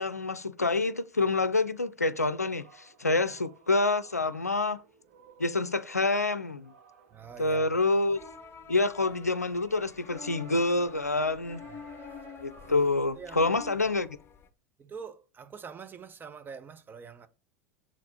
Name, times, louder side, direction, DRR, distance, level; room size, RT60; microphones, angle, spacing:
voice 1, 0.0-4.8 5.4-6.7 7.4-8.2 8.7-11.6 12.4-14.1, left 3 dB, 90° left, 0.5 m, -27 dB
sound 1, 2.1-8.5 8.8-12.8, right 5 dB, 65° right, 1.4 m, -56 dB
voice 2, 7.1-7.8 11.7-11.8 13.1-13.4 14.8-17.3, right 6 dB, 25° right, 0.9 m, -45 dB
sound 2, 8.1-14.5, left 6 dB, 30° left, 0.9 m, -48 dB
7.3 x 4.2 x 4.1 m
figure-of-eight pair, 80°, 8 cm